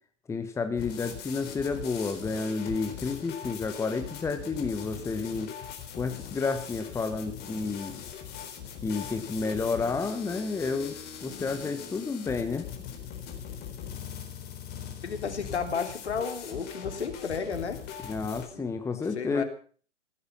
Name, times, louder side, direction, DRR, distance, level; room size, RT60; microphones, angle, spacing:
voice 1, 0.3-5.5 6.0-7.9 8.8-10.9 11.2-12.7 18.0-19.4, left 4 dB, 10° left, 7 dB, 1.4 m, -31 dB
sound 1, 0.8-18.5, left 8 dB, 25° left, 4.1 m, -41 dB
voice 2, 15.0-17.8 18.5-19.4, left 6 dB, 65° left, 7 dB, 3.3 m, -33 dB
16.0 x 15.5 x 5.7 m, 0.43 s
figure-of-eight pair, 110°, 36 cm